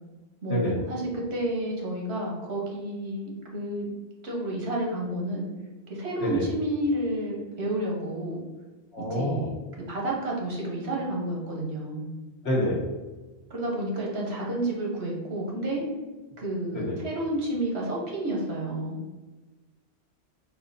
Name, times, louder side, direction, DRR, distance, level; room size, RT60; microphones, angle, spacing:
voice 1, 0.4-3.9 4.2-5.5 5.9-8.4 9.1-9.5 9.9-12.1 13.5-15.8 16.4-19.0, right 1 dB, 70° right, -3 dB, 1.4 m, -30 dB
voice 2, 8.9-9.5 12.4-12.8 16.7-17.0, left 1 dB, 70° left, -3 dB, 1.4 m, -27 dB
4.8 x 2.3 x 4.1 m, 1.2 s
omnidirectional pair, 1.1 m